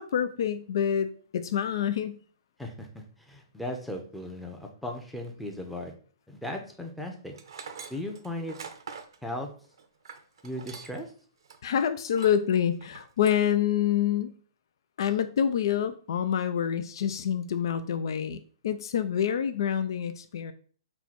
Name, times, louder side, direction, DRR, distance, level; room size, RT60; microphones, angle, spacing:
voice 1, 0.0-2.2 11.6-14.3 15.0-20.5, left 9 dB, 70° left, 11 dB, 0.3 m, -27 dB
voice 2, 2.6-5.9 6.3-7.3 7.9-8.6 9.2-9.5 10.4-11.1, left 1 dB, ahead, 2 dB, 0.6 m, -37 dB
Tools, 7.3-11.1 11.4-11.6 12.1-12.4 12.8-13.4, right 6 dB, 75° right, 0.6 m, -44 dB
4.4 x 2.2 x 4.1 m, 0.44 s
hypercardioid pair, 140°, 2 cm